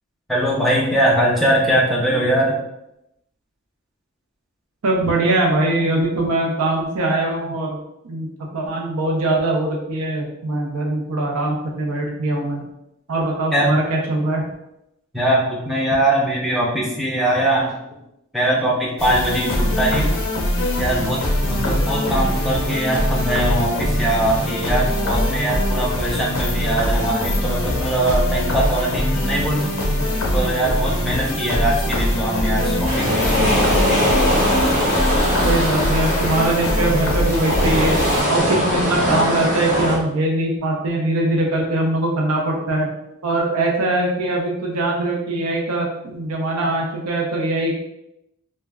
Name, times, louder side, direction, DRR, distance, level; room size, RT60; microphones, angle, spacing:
voice 1, 0.3-2.6 13.5-13.8 15.1-17.8 18.3-20.1 20.8-30.0 30.3-33.2, right 1 dB, ahead, -4 dB, 0.4 m, -21 dB
voice 2, 4.8-8.3 8.5-12.6 13.1-14.4 35.4-42.9 43.2-45.9 46.1-47.8, right 2 dB, 90° right, -1 dB, 0.5 m, -22 dB
sound 1, 19.0-38.2, left 1 dB, 60° left, 0.6 m, -22 dB
sound 2, 32.9-40.0, equal, 35° right, 1.0 m, -21 dB
2.3 x 2.1 x 3.3 m, 0.85 s
head